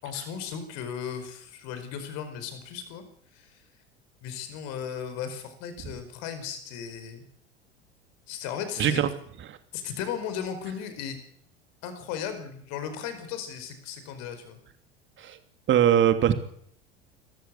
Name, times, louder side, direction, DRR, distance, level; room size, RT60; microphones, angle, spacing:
voice 1, 0.0-3.0 3.3-3.6 4.2-7.2 8.3-9.0 9.7-11.2 11.8-14.6, left 8 dB, 55° left, 10 dB, 5.0 m, -36 dB
voice 2, 8.8-9.1 9.5-9.6 15.2-15.4 15.7-16.3, right 10 dB, 35° right, 9 dB, 2.8 m, -21 dB
26.0 x 14.5 x 8.4 m, 0.67 s
figure-of-eight pair, 80°, 33 cm